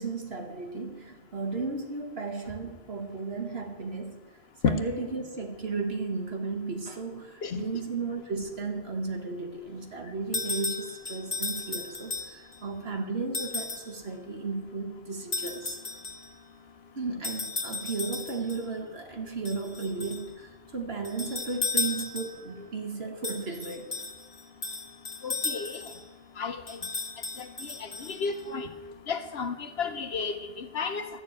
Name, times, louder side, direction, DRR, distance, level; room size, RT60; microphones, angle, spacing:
voice 1, 0.0-4.2 4.6-15.8 17.0-24.0, right 4 dB, 55° right, 3 dB, 1.8 m, -34 dB
sound 1, 10.3-12.6 13.3-13.9 15.3-16.3 17.2-18.6 19.4-20.3 21.0-22.5 23.2-26.0 26.7-28.4, left 3 dB, 40° left, 1.6 m, -35 dB
voice 2, 25.2-25.8 26.4-26.8 27.8-31.1, left 5 dB, 60° left, 8 dB, 1.0 m, -32 dB
12.5 x 7.1 x 8.8 m, 1.2 s
omnidirectional pair, 1.3 m